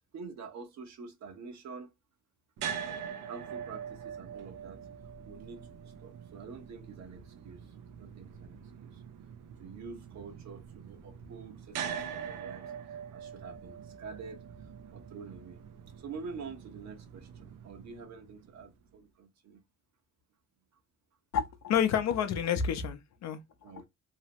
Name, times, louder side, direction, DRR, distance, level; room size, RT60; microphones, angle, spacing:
voice 1, 0.1-1.9 3.0-4.9 5.2-9.0 9.6-15.6 15.9-19.6 20.7-20.8 23.6-23.8, right 5 dB, 65° right, 0.9 m, -47 dB
sound 1, 2.6-18.7, right 8 dB, 85° right, 0.6 m, -43 dB
voice 2, 21.3-23.7, left 8 dB, 65° left, 0.6 m, -29 dB
2.8 x 2.0 x 2.8 m
cardioid pair, 90°, 30 cm